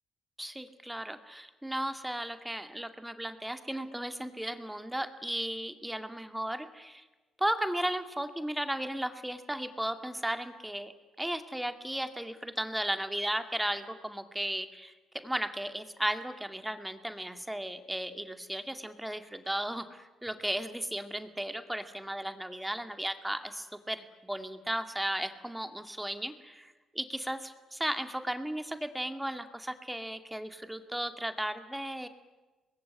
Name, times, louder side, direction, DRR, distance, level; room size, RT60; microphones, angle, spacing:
voice 1, 0.4-7.0 7.4-10.9 11.2-32.1, right 1 dB, 5° right, 8 dB, 2.3 m, -35 dB
25.0 x 21.0 x 9.7 m, 1.2 s
cardioid pair, 90°, 0 cm